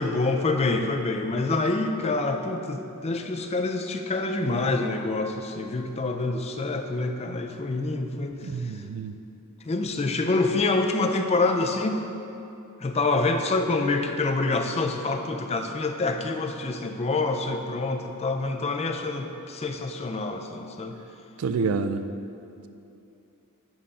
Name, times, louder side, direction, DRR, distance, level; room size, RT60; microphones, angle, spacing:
voice 1, 0.0-8.8 9.6-12.0 12.8-21.0, left 3 dB, 30° left, 5 dB, 0.4 m, -26 dB
voice 2, 8.4-9.2 21.4-22.0, right 4 dB, 75° right, 10 dB, 0.4 m, -28 dB
8.8 x 3.7 x 5.5 m, 2.7 s
head